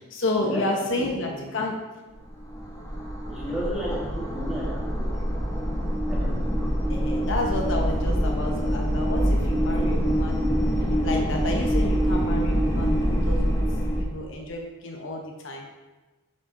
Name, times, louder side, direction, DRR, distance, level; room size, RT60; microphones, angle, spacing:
voice 1, 0.1-1.7 6.9-10.7 11.0-13.6 14.0-15.6, left 2 dB, 60° left, 1 dB, 0.8 m, -30 dB
voice 2, 1.0-1.4 3.3-4.9 6.1-6.4 8.0-8.2 9.7-9.9, equal, 5° right, -8 dB, 2.0 m, -34 dB
sound 1, 2.1-14.0, equal, 15° left, 1.1 m, -25 dB
7.1 x 4.7 x 4.1 m, 1.2 s
head